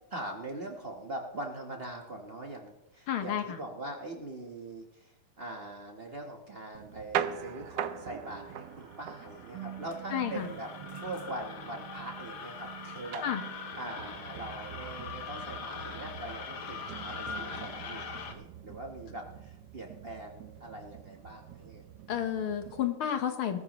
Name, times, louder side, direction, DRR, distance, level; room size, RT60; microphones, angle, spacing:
voice 1, 0.1-10.7 11.0-13.3 13.7-21.8, right 1 dB, 35° right, 2 dB, 1.2 m, -42 dB
voice 2, 3.1-3.6 10.1-10.5 13.2-13.4 22.1-23.6, left 9 dB, 80° left, 7 dB, 2.1 m, -31 dB
sound 1, 6.7-22.9, right 10 dB, 70° right, 1.1 m, -42 dB
sound 2, 8.3-18.3, left 5 dB, 55° left, 1.6 m, -43 dB
19.5 x 14.0 x 3.1 m, 0.93 s
omnidirectional pair, 2.3 m